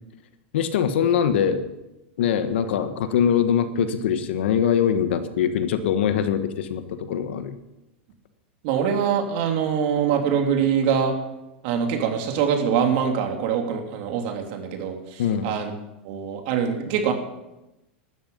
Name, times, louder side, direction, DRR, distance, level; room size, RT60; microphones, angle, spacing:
voice 1, 0.5-1.6 2.2-7.6 15.2-15.5, left 8 dB, 75° left, 10 dB, 1.5 m, -22 dB
voice 2, 8.6-11.1 11.6-15.7 16.0-17.1, right 7 dB, 60° right, 3 dB, 3.0 m, -24 dB
15.5 x 12.5 x 5.5 m, 0.96 s
hypercardioid pair, 120°, 6 cm